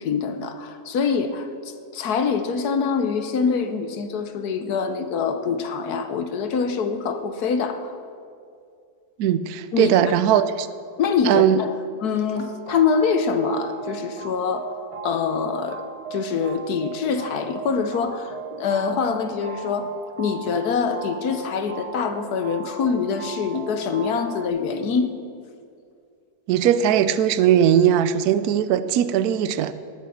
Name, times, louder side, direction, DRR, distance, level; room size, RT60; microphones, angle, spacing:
voice 1, 0.0-1.5 1.9-7.9 9.7-9.9 10.3-10.4 11.0-11.7 12.0-15.8 16.1-19.9 20.2-25.1, left 5 dB, 70° left, 9 dB, 1.4 m, -24 dB
voice 2, 9.2-10.7 11.2-11.6 26.5-29.7, right 10 dB, 75° right, 13 dB, 1.1 m, -19 dB
sound 1, 12.3-24.5, right 7 dB, 50° right, 0.4 m, -38 dB
18.5 x 8.1 x 6.4 m, 2.3 s
omnidirectional pair, 1.7 m